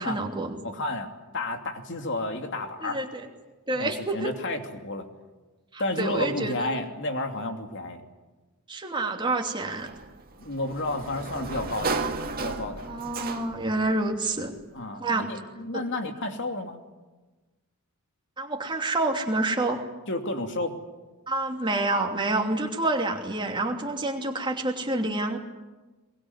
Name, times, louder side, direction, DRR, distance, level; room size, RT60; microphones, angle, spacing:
voice 1, 0.0-0.6 2.8-3.3 3.7-4.3 5.7-6.7 8.7-9.9 12.9-14.5 15.0-15.3 15.7-15.8 18.4-19.8 21.3-25.4, right 2 dB, 20° right, 2 dB, 2.9 m, -28 dB
voice 2, 0.6-3.0 3.7-5.1 5.8-8.0 10.4-13.0 14.7-16.8 20.1-20.8, left 2 dB, 55° left, 5 dB, 2.8 m, -31 dB
Sliding door, 9.8-13.8, right 3 dB, 45° right, 2.0 m, -33 dB
23.0 x 22.5 x 9.7 m, 1.2 s
head